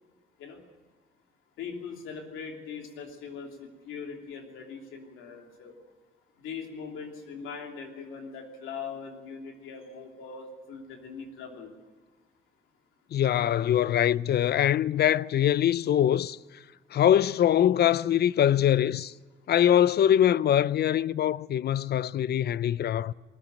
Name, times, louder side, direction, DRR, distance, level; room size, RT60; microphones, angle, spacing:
voice 1, 1.6-5.7 6.4-11.7, left 5 dB, 85° left, 3.1 m, -41 dB
voice 2, 13.1-16.4 16.9-19.1 19.5-23.1, left 10 dB, 55° left, 0.5 m, -23 dB
20.0 x 14.5 x 9.0 m
cardioid pair, 90°, 20 cm